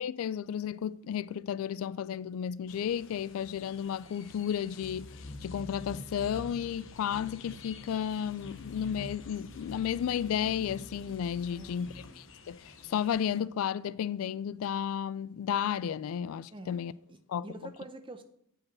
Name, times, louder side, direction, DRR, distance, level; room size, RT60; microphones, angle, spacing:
voice 1, 0.0-5.1 5.4-11.9 12.2-16.9 17.3-17.5, left 8 dB, 85° left, 0.3 m, -33 dB
sound 1, 2.7-13.4, left 2 dB, 65° left, 0.8 m, -47 dB
voice 2, 11.5-11.9 16.5-16.8 17.1-18.2, right 2 dB, 25° right, 0.7 m, -46 dB
8.5 x 5.0 x 6.1 m
head